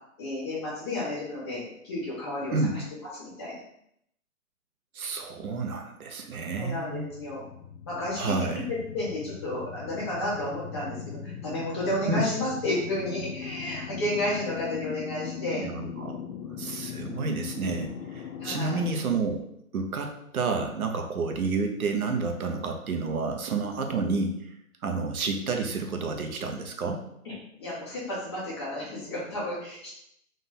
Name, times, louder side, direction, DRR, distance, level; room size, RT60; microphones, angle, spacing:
voice 1, 0.2-2.8 3.1-3.6 6.5-7.4 7.8-15.7 18.4-18.8 27.2-29.9, left 1 dB, 20° left, -9 dB, 1.2 m, -32 dB
voice 2, 4.9-7.1 8.2-8.7 12.1-12.2 15.6-16.2 16.5-19.4 19.7-24.5 24.8-27.0, right 4 dB, 90° right, 4 dB, 0.9 m, -30 dB
sound 1, 6.3-18.9, left 7 dB, 90° left, 0.7 m, -40 dB
3.8 x 2.6 x 4.0 m, 0.74 s
hypercardioid pair, 175°, 42 cm